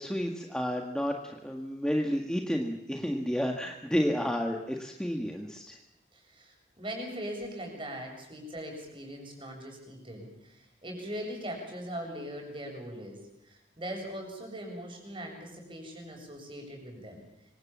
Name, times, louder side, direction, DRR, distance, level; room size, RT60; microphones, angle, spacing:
voice 1, 0.0-5.8, equal, 5° left, 2 dB, 1.7 m, -31 dB
voice 2, 6.1-13.2 13.4-17.2, equal, 25° right, 2 dB, 7.8 m, -40 dB
26.0 x 25.5 x 7.5 m, 0.85 s
head